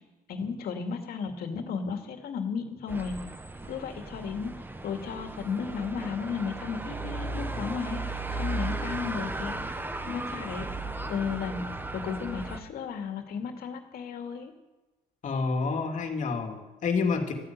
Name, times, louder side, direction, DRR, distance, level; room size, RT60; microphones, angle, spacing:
voice 1, 0.3-3.1 3.7-4.5 4.8-9.8 10.1-10.7 11.1-11.6 11.9-14.5, left 6 dB, 65° left, 4 dB, 2.4 m, -34 dB
sound 1, 2.9-12.6, right 2 dB, 10° right, 1.1 m, -36 dB
voice 2, 15.2-17.3, left 4 dB, 45° left, 3 dB, 2.8 m, -28 dB
14.5 x 9.7 x 9.3 m, 1.1 s
cardioid pair, 110°, 17 cm